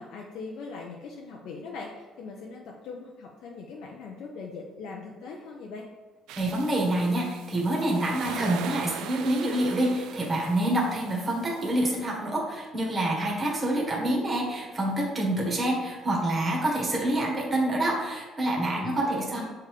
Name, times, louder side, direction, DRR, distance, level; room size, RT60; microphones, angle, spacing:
voice 1, 0.0-5.9 18.7-19.5, left 4 dB, 75° left, -2 dB, 0.7 m, -41 dB
sound 1, 6.3-12.1, right 9 dB, 90° right, 0.4 m, -41 dB
voice 2, 6.4-19.5, right 1 dB, 20° right, -2 dB, 1.4 m, -27 dB
6.6 x 3.5 x 4.7 m, 1.3 s
cardioid pair, 145°, 0 cm